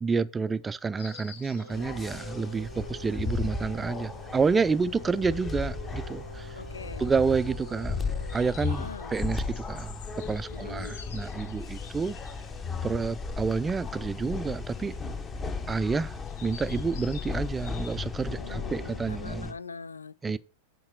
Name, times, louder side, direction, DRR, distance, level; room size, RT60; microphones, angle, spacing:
voice 1, 0.0-6.6 7.0-8.0 8.3-10.0 10.3-12.2 12.8-15.0 15.7-19.5 20.2-20.4, right 5 dB, 15° right, 0.3 m, -29 dB
Insect, 1.0-18.0, left 8 dB, 55° left, 1.0 m, -52 dB
Brass instrument, 1.6-8.5, right 3 dB, 70° right, 0.7 m, -47 dB
sound 1, 1.7-19.5, left 4 dB, 20° left, 0.9 m, -35 dB
voice 2, 6.6-7.1 8.6-9.2 10.5-11.0 18.3-20.4, left 5 dB, 75° left, 0.3 m, -42 dB
8.6 x 5.2 x 4.6 m
figure-of-eight pair, 90°, 0 cm